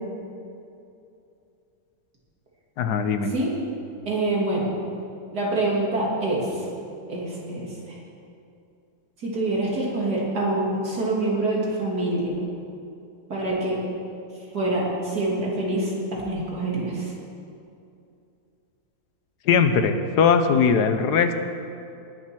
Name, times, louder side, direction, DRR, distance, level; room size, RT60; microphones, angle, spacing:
voice 1, 2.8-3.3 19.5-21.3, left 6 dB, 85° left, 8 dB, 1.4 m, -20 dB
voice 2, 4.0-4.7 5.3-6.7 7.1-7.7 9.2-12.3 13.3-13.8 14.5-17.1, right 2 dB, 80° right, -4 dB, 3.4 m, -25 dB
19.5 x 7.4 x 6.2 m, 2.6 s
omnidirectional pair, 1.7 m